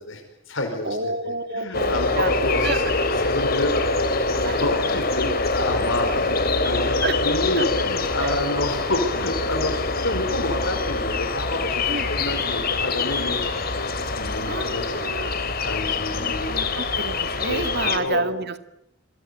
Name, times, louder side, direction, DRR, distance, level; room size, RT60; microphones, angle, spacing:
voice 1, 0.0-2.8 3.2-16.5 17.5-18.2, left 1 dB, 70° left, 3 dB, 5.2 m, -29 dB
voice 2, 0.8-2.8 4.4-4.8 5.2-5.4 7.0-7.2 7.6-7.7 8.2-8.5 9.0-9.1 11.9-12.1 14.5-15.4 16.2-18.6, right 3 dB, 55° right, 9 dB, 2.1 m, -29 dB
sound 1, 1.7-18.0, left 3 dB, 50° left, 3.1 m, -25 dB
29.0 x 23.5 x 8.4 m, 0.81 s
head